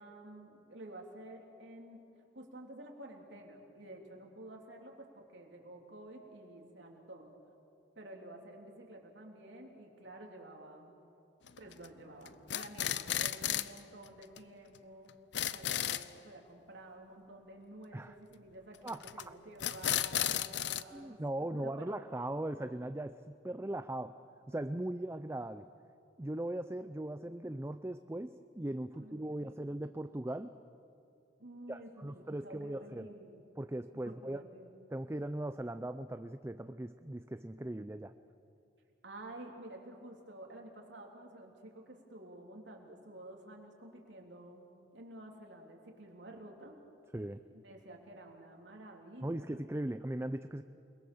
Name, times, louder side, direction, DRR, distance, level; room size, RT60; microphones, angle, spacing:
voice 1, 0.0-2.1 2.3-7.3 8.0-10.9 11.6-15.1 15.5-22.0 28.9-29.7 31.4-33.4 34.0-34.7 39.0-46.8 47.5-49.6, right 1 dB, 75° right, 1 dB, 3.6 m, -51 dB
sound 1, 11.5-11.9 12.3-13.8 14.1-14.2 14.4-14.5 14.8-14.9 15.1-16.1 18.9-19.2 19.6-20.8, left 11 dB, 70° left, 0.6 m, -34 dB
voice 2, 18.8-19.3 20.9-24.2 24.5-25.7 26.2-30.5 31.7-33.1 33.6-34.4 34.9-38.1 47.1-47.4 49.2-50.6, right 1 dB, 15° right, 10 dB, 0.5 m, -39 dB
29.0 x 21.5 x 7.2 m, 2.6 s
head